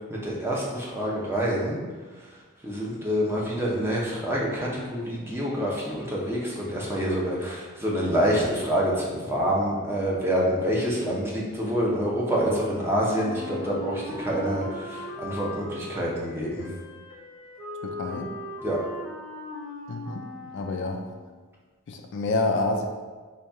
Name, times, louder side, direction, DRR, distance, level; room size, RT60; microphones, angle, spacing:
voice 1, 0.1-1.8 2.6-16.7 18.6-18.8, equal, 10° right, -4 dB, 0.6 m, -27 dB
Wind instrument woodwind instrument, 13.0-21.2, left 1 dB, 65° right, 1.0 m, -39 dB
voice 2, 17.8-18.3 19.9-20.3 20.5-21.0 21.9-22.9, left 2 dB, 55° left, 3 dB, 0.3 m, -28 dB
4.1 x 2.3 x 3.4 m, 1.4 s
head